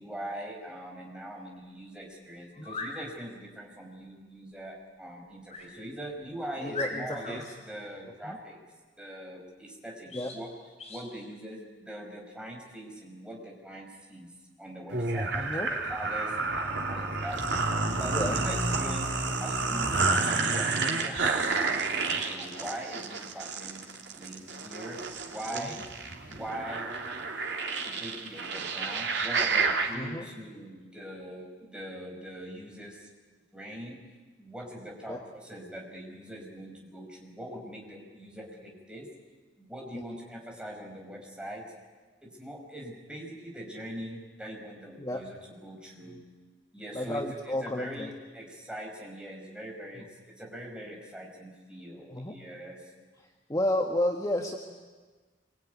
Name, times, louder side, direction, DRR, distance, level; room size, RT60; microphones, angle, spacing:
voice 1, 0.0-8.6 9.0-10.5 10.9-14.3 14.6-19.1 19.4-23.8 24.1-25.0 25.3-25.8 26.3-26.9 27.7-33.1 33.5-34.0 34.4-39.1 39.6-41.7 42.2-46.2 46.7-52.8, equal, 5° right, 0 dB, 5.7 m, -42 dB
sound 1, 2.5-3.0 5.5-5.7 6.2-6.3 6.7-7.4 10.1-10.4 10.8-11.1, left 3 dB, 40° left, 5.3 m, -38 dB
voice 2, 6.6-7.5 8.2-8.4 10.1-10.3 15.4-15.7 18.1-18.3 25.5-25.8 29.9-30.3 35.1-35.2 45.0-45.2 46.9-48.1 52.1-52.4 53.2-54.6, left 1 dB, 20° left, 2 dB, 1.6 m, -32 dB
sound 2, 14.9-29.9, right 3 dB, 70° right, 3.2 m, -30 dB
26.0 x 23.5 x 9.6 m, 1.4 s
head